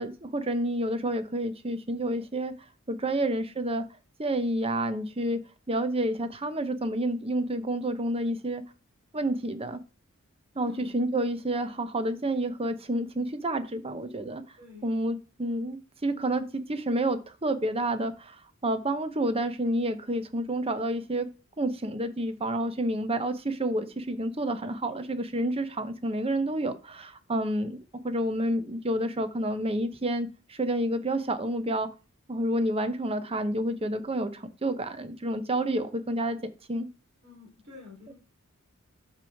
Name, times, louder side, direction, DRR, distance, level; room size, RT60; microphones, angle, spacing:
voice 1, 0.0-2.5 2.9-3.8 4.2-8.6 9.1-9.8 10.6-14.4 14.8-21.3 21.6-31.9 32.3-36.9 38.1-38.2, right 1 dB, 25° right, 10 dB, 0.9 m, -29 dB
voice 2, 14.6-15.0 37.2-38.1, left 3 dB, 55° right, -2 dB, 3.8 m, -48 dB
12.5 x 4.8 x 3.6 m, 0.32 s
head